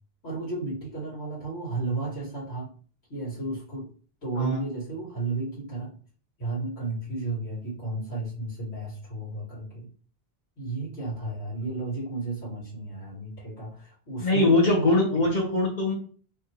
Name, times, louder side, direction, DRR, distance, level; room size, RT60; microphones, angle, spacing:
voice 1, 0.2-2.7 3.1-3.9 4.2-5.9 6.4-9.9 10.6-14.7, right 2 dB, 80° left, -8 dB, 2.6 m, -33 dB
voice 2, 14.2-15.9, left 2 dB, 45° left, -3 dB, 1.3 m, -22 dB
4.6 x 3.6 x 3.0 m, 0.43 s
omnidirectional pair, 1.1 m